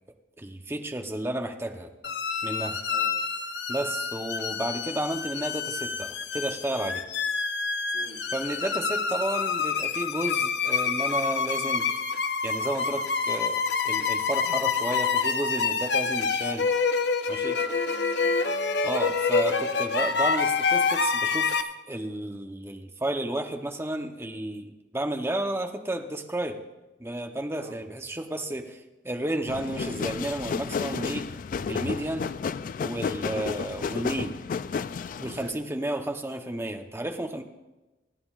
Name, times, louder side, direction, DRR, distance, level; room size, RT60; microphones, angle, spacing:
voice 1, 0.4-1.9 2.4-2.8 3.7-7.0 8.3-11.9 12.4-16.7 17.3-17.6 18.8-21.6 21.9-26.6 27.0-28.8 29.0-31.3 31.7-32.3 32.8-34.4 35.2-37.4, right 1 dB, 15° right, 5 dB, 0.8 m, -32 dB
sound 1, 2.0-21.6, left 5 dB, 70° left, 0.7 m, -27 dB
voice 2, 7.9-8.2 17.4-18.8 19.5-19.8 27.5-27.8 35.4-35.6, right 2 dB, 80° right, 1 dB, 1.4 m, -46 dB
sound 2, 29.5-35.5, left 5 dB, 45° left, 0.3 m, -32 dB
28.0 x 9.4 x 2.4 m, 1.1 s
head